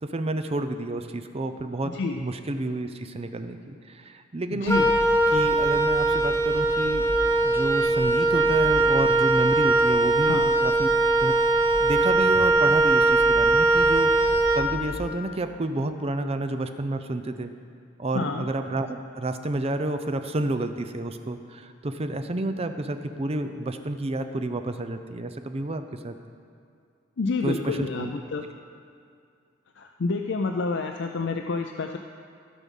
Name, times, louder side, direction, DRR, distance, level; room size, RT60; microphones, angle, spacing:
voice 1, 0.0-4.9 5.3-10.9 11.2-11.4 11.8-17.5 18.0-26.2 27.4-28.1, right 2 dB, 30° right, 8 dB, 0.5 m, -30 dB
voice 2, 4.5-4.9 10.3-10.5 18.1-18.4 27.2-28.5 29.8-32.0, left 3 dB, 65° left, 4 dB, 0.5 m, -28 dB
Wind instrument woodwind instrument, 4.7-15.1, right 2 dB, 15° left, 0.8 m, -21 dB
15.5 x 6.2 x 5.4 m, 2.4 s
head